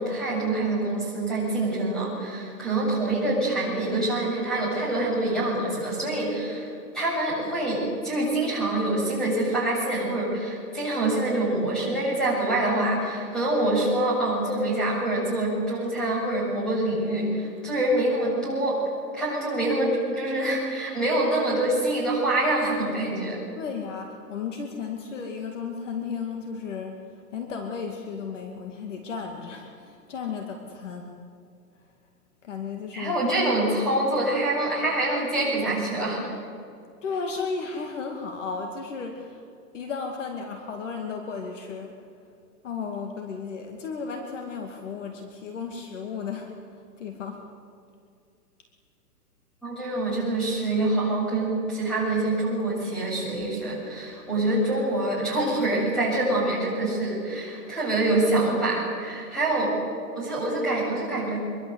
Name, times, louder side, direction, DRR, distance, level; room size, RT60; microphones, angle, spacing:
voice 1, 0.0-6.7 6.9-18.8 19.1-23.4 32.9-36.2 49.6-59.7 60.1-61.4, right 2 dB, ahead, -7 dB, 7.7 m, -25 dB
voice 2, 23.6-31.1 32.4-33.2 37.0-39.4 39.7-42.0 42.6-47.4, left 5 dB, 45° left, 3 dB, 2.5 m, -34 dB
24.5 x 23.5 x 8.1 m, 2.4 s
hypercardioid pair, 165°, 49 cm